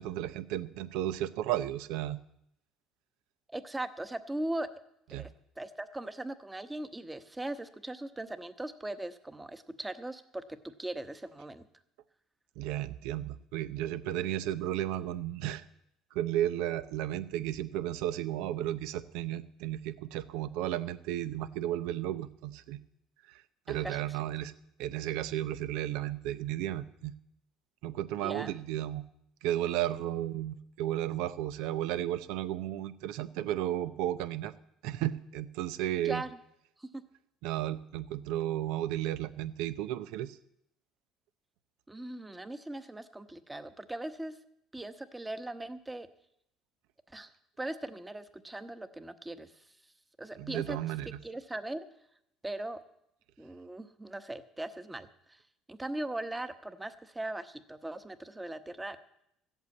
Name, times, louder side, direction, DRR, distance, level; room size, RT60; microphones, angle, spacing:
voice 1, 0.0-2.2 5.1-5.3 12.6-15.6 16.1-22.8 23.3-23.4 23.7-24.5 24.8-27.1 27.8-29.0 29.4-34.5 34.8-36.2 37.4-40.4 50.4-51.2, right 12 dB, 85° right, 14 dB, 0.7 m, -33 dB
voice 2, 3.5-4.7 5.2-5.3 5.6-11.6 23.7-24.2 28.2-28.6 36.0-36.4 36.8-36.9 41.9-44.3 44.7-46.1 47.1-47.3 47.6-49.6 50.2-50.8 51.1-51.9 52.4-52.8 53.4-55.4 55.7-59.0, right 1 dB, 10° right, 11 dB, 1.1 m, -39 dB
14.5 x 8.2 x 8.3 m, 0.78 s
supercardioid pair, 100°, 0 cm